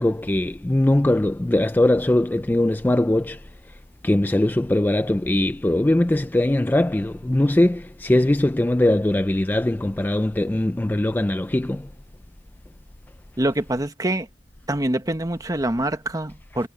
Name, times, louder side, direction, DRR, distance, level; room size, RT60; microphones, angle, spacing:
voice 1, 0.0-3.8 4.0-11.9, left 1 dB, 10° left, 0.4 m, -21 dB
voice 2, 13.4-14.3 14.7-16.7, right 1 dB, 20° right, 1.2 m, -25 dB
head